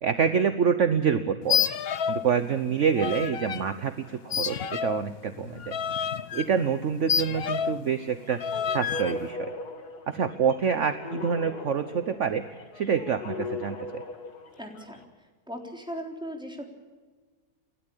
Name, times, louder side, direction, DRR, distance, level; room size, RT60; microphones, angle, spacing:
voice 1, 0.0-1.7 2.1-5.7 6.3-9.5 10.1-12.5 12.7-14.0, right 7 dB, 55° right, 10 dB, 1.2 m, -27 dB
sound 1, 1.4-2.3 2.6-3.6 4.3-7.9 8.4-9.1, left 8 dB, 50° left, 0.8 m, -29 dB
sound 2, 8.2-15.0, left 3 dB, 85° left, 2.6 m, -39 dB
voice 2, 14.6-15.0 15.5-16.6, equal, 5° right, 2 dB, 3.6 m, -37 dB
29.0 x 12.5 x 8.4 m, 1.4 s
omnidirectional pair, 1.6 m